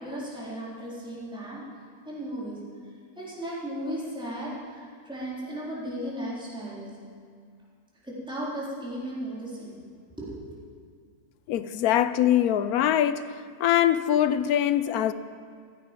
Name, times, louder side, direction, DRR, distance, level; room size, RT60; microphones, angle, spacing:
voice 1, 0.0-1.6 2.1-2.6 3.2-6.9 8.0-9.8 10.2-10.5, right 1 dB, 5° right, 3.8 m, -35 dB
voice 2, 11.5-13.3 13.6-15.1, left 11 dB, 80° left, 1.1 m, -23 dB
16.0 x 15.5 x 5.2 m
omnidirectional pair, 1.6 m